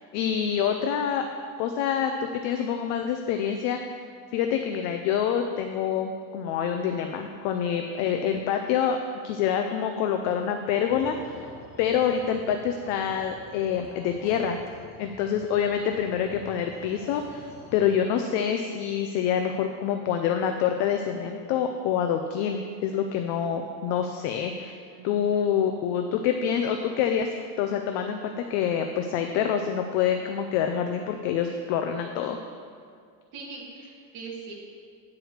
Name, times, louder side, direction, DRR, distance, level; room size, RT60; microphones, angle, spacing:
voice 1, 0.1-1.3 1.6-3.8 4.3-9.0 9.2-11.5 11.8-14.6 15.0-24.8 25.0-32.4, left 8 dB, 40° left, 5 dB, 0.4 m, -26 dB
sound 1, 10.9-18.0, left 2 dB, 65° left, 2.1 m, -48 dB
voice 2, 24.9-25.5 33.3-34.5, right 4 dB, 45° right, -4 dB, 2.2 m, -41 dB
9.6 x 4.8 x 6.5 m, 2.1 s
cardioid pair, 170°, 43 cm